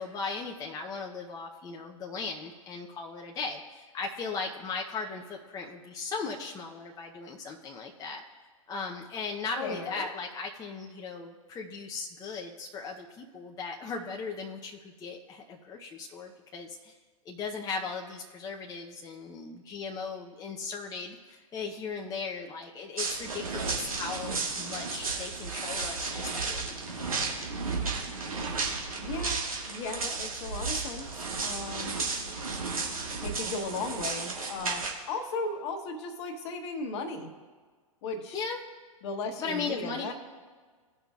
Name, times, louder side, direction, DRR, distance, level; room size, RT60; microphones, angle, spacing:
voice 1, 0.0-8.2 8.7-16.9 17.3-27.0 38.3-38.6 39.4-40.1, left 4 dB, 20° left, 0 dB, 0.7 m, -37 dB
voice 2, 9.6-10.1 29.0-31.1 31.4-32.0 33.2-37.3 38.0-38.4 39.0-40.1, left 3 dB, 50° left, 5 dB, 1.2 m, -36 dB
sound 1, 23.0-34.9, right 4 dB, 80° right, 1.6 m, -33 dB
16.5 x 5.6 x 2.4 m, 1.5 s
figure-of-eight pair, 105°, 18 cm